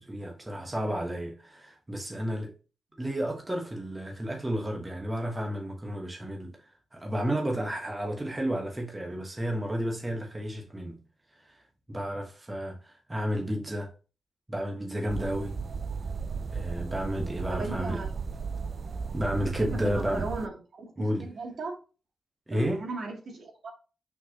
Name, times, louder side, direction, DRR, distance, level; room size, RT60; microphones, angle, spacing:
voice 1, 0.0-2.5 3.0-6.5 6.9-11.0 11.3-11.6 11.9-13.9 14.5-15.6 16.5-18.0 19.1-20.3 21.0-21.3 22.5-22.8, equal, 15° right, 1.3 m, -32 dB
sound 1, 15.1-20.5, right 5 dB, 50° right, 0.4 m, -35 dB
voice 2, 17.5-18.1 19.6-20.5 20.8-21.7 22.5-23.7, right 3 dB, 70° right, 2.7 m, -36 dB
6.1 x 5.7 x 2.9 m
cardioid pair, 90°, 0 cm